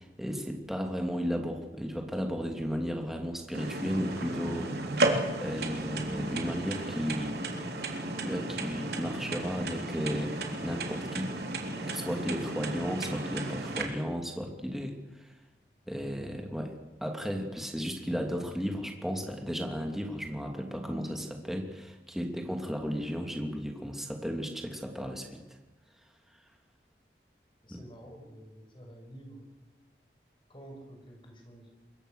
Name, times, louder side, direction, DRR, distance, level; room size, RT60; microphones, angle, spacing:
voice 1, 0.0-7.4 8.2-11.3 11.9-15.3 15.9-16.7 17.0-25.4 27.7-27.8, equal, ahead, 2 dB, 3.0 m, -34 dB
sound 1, 3.5-13.8, right 2 dB, 65° right, 3.6 m, -34 dB
voice 2, 27.6-29.5 30.5-31.7, right 1 dB, 30° left, 3 dB, 6.0 m, -49 dB
26.0 x 22.0 x 6.7 m, 1.2 s
head